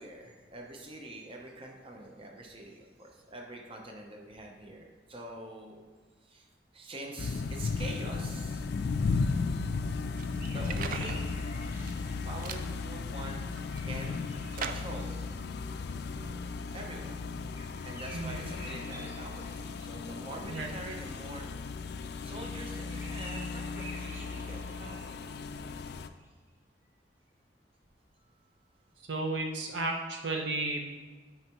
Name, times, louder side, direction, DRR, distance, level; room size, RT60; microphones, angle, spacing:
voice 1, 0.0-5.8 6.2-6.5 6.7-8.7 10.5-11.3 12.2-14.2 14.5-15.3 16.4-17.2 17.8-21.8 22.2-25.2, right 2 dB, 30° right, 1 dB, 0.7 m, -45 dB
sound 1, 7.2-26.1, left 4 dB, 60° left, 0.3 m, -35 dB
sound 2, 10.2-11.2 11.7-12.1 12.4-12.7 13.3-14.0 14.6-15.1, right 6 dB, 50° right, 0.4 m, -40 dB
sound 3, 10.4-12.5 13.7-15.4 17.5-20.2 22.7-25.4 25.7-26.3, equal, 15° right, 1.1 m, -50 dB
voice 2, 29.1-31.0, right 2 dB, 70° right, 1 dB, 0.8 m, -33 dB
9.7 x 4.5 x 3.0 m, 1.4 s
head